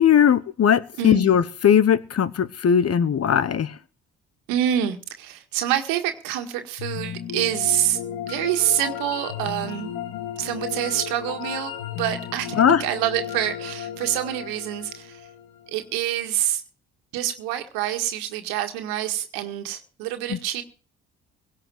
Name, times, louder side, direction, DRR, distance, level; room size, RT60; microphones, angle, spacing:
voice 1, 0.0-3.7 12.6-12.8, left 8 dB, 45° left, 17 dB, 1.1 m, -19 dB
voice 2, 1.0-1.3 4.5-8.0 8.3-9.9 10.4-15.3 15.7-16.6 17.1-20.6, right 11 dB, 85° right, 7 dB, 1.8 m, -26 dB
sound 1, 6.8-15.9, left 9 dB, 80° left, 2.3 m, -34 dB
17.5 x 5.8 x 9.0 m, 0.38 s
hypercardioid pair, 50°, 33 cm